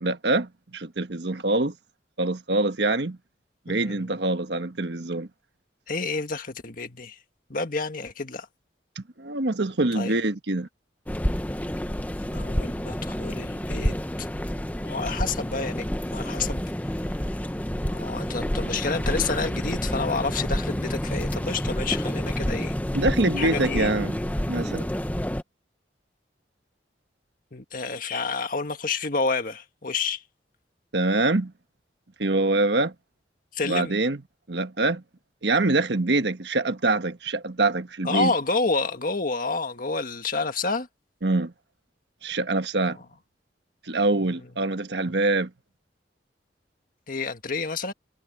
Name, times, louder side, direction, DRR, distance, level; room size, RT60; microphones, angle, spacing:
voice 1, 0.0-1.7 2.2-3.2 3.7-5.3 9.0-10.7 22.9-24.2 24.5-24.9 30.9-31.5 32.2-32.9 33.6-34.2 34.5-35.0 35.4-38.3 41.2-41.5 42.2-43.0 43.9-45.5, right 2 dB, 70° right, 1.4 m, -24 dB
voice 2, 3.7-4.1 5.9-7.2 7.5-8.5 9.9-10.1 12.3-14.3 14.8-16.6 17.9-22.7 23.4-23.9 27.5-30.2 33.5-33.9 38.0-40.9 47.1-47.9, left 4 dB, 50° left, 1.7 m, -29 dB
sound 1, 11.1-25.4, equal, 10° left, 0.9 m, -29 dB
head